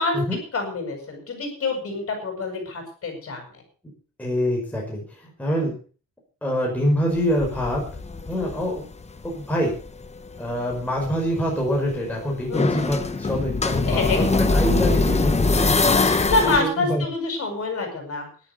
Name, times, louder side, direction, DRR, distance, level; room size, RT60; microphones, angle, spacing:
voice 1, 0.5-3.5 8.3-8.7 12.5-12.9 13.6-14.2 16.0-18.3, left 3 dB, 45° left, 4 dB, 7.6 m, -27 dB
voice 2, 4.2-5.7 6.4-7.8 8.3-8.9 9.2-9.7 10.4-15.7 16.4-17.0, equal, 5° left, -2 dB, 5.3 m, -25 dB
sound 1, 7.1-9.3 9.7-16.6, left 3 dB, 20° left, 1.2 m, -23 dB
13.5 x 12.0 x 6.7 m, 0.39 s
wide cardioid pair, 170°, 33 cm